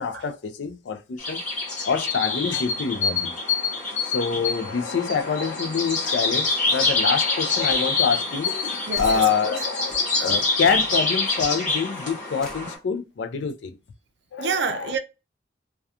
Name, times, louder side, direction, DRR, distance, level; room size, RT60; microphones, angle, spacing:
voice 1, 0.0-3.3 4.0-13.8 14.3-14.9, left 6 dB, 80° left, 0.4 m, -26 dB
sound 1, 1.2-12.8, left 3 dB, 45° left, 0.9 m, -26 dB
sound 2, 7.7-7.9 8.9-9.2 9.9-10.1 10.6-10.9 11.3-11.5 12.4-12.7, equal, 5° left, 0.5 m, -38 dB
voice 2, 8.9-9.6 14.4-15.0, right 5 dB, 70° right, 0.4 m, -28 dB
2.3 x 2.2 x 2.7 m
head